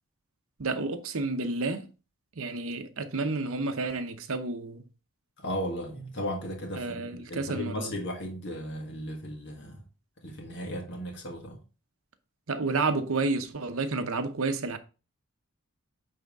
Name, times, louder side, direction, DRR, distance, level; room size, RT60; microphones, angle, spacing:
voice 1, 0.6-1.9 2.4-4.9 6.8-7.9 12.5-14.8, right 3 dB, 65° right, 0.8 m, -30 dB
voice 2, 5.4-9.8 10.2-11.6, equal, 50° left, 1.7 m, -36 dB
9.2 x 3.5 x 3.6 m
head